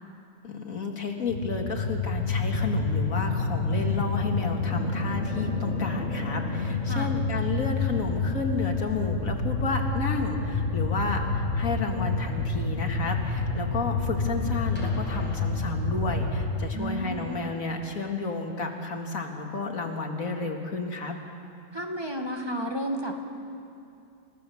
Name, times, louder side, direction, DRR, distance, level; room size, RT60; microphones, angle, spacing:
voice 1, 0.4-21.2, left 3 dB, 90° left, 2 dB, 2.5 m, -31 dB
sound 1, 1.3-16.7, left 3 dB, 60° left, 1.8 m, -28 dB
sound 2, 14.8-16.4 17.7-17.8, equal, 5° left, 3.8 m, -45 dB
voice 2, 16.7-17.3 21.7-23.2, equal, 20° right, 2 dB, 1.9 m, -32 dB
29.5 x 16.0 x 7.2 m, 2.5 s
omnidirectional pair, 1.4 m